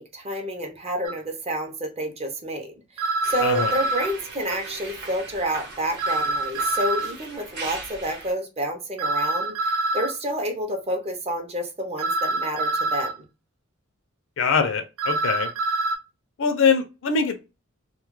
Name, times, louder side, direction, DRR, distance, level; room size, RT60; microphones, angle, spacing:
voice 1, 0.0-13.3, right 1 dB, 30° right, 0.5 m, -29 dB
sound 1, 1.0-1.1 3.0-4.1 6.0-7.1 9.0-10.1 12.0-13.1 15.0-15.9, right 2 dB, 85° right, 0.5 m, -25 dB
sound 2, 3.2-8.3, right 3 dB, 55° right, 0.8 m, -39 dB
voice 2, 3.4-3.7 14.4-15.5 16.4-17.4, left 5 dB, 60° left, 0.5 m, -23 dB
2.2 x 2.1 x 3.0 m
head